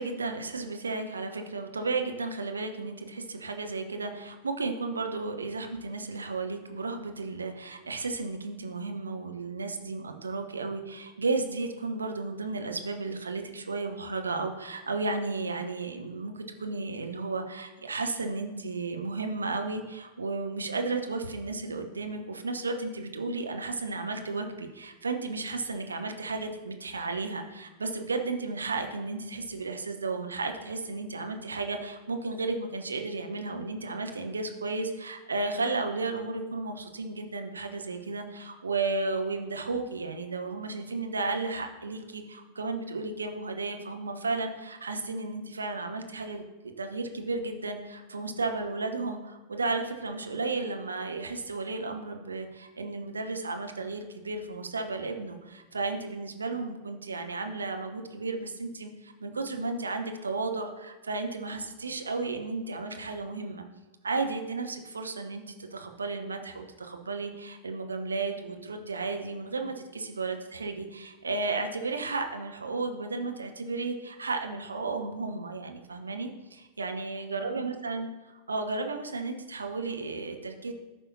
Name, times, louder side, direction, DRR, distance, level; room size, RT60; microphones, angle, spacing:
voice 1, 0.0-46.5 46.8-63.6 64.0-78.1 78.5-80.7, right 3 dB, 75° right, 5 dB, 0.9 m, -33 dB
14.0 x 5.4 x 2.8 m, 1.2 s
figure-of-eight pair, 90°, 0 cm